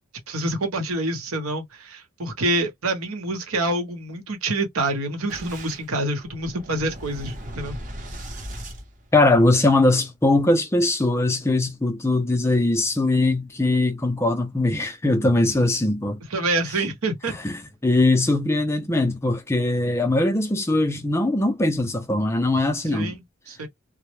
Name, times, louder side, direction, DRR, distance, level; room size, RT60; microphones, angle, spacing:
voice 1, 0.3-7.8 16.3-17.3 22.8-23.2 23.5-23.7, right 2 dB, 85° right, 0.9 m, -27 dB
Boom, 5.3-9.7, right 1 dB, 35° right, 0.7 m, -38 dB
voice 2, 9.1-16.2 17.2-23.1, left 2 dB, 10° left, 0.3 m, -21 dB
2.0 x 2.0 x 3.1 m
head